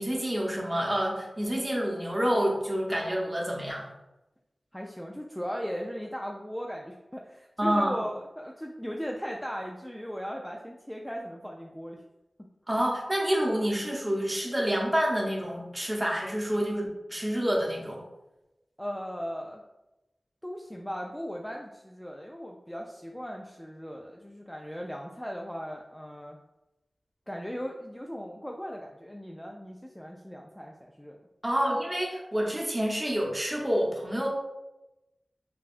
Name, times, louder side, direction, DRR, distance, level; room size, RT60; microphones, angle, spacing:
voice 1, 0.0-3.9 7.6-8.0 12.7-18.0 31.4-34.3, equal, 20° right, -2 dB, 0.9 m, -28 dB
voice 2, 4.7-12.0 12.4-12.5 18.8-19.6 20.4-26.4 27.3-31.2, equal, 5° left, 0 dB, 0.3 m, -38 dB
5.3 x 2.2 x 2.5 m, 0.97 s
wide cardioid pair, 75°, 0 cm